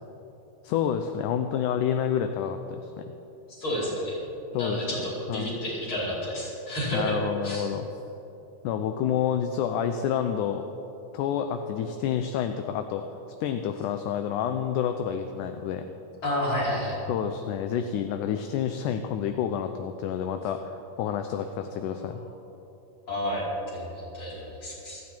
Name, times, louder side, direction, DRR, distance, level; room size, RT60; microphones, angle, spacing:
voice 1, 0.6-3.0 4.5-4.9 5.3-5.5 6.9-7.9 8.6-10.6 11.1-13.0 13.4-15.8 17.1-22.2, left 8 dB, 80° left, 7 dB, 2.1 m, -29 dB
voice 2, 3.5-4.2 4.5-7.2 7.4-7.7 16.2-17.0 23.1-25.0, equal, 35° left, -7 dB, 5.4 m, -30 dB
28.0 x 9.5 x 4.5 m, 3.0 s
omnidirectional pair, 3.8 m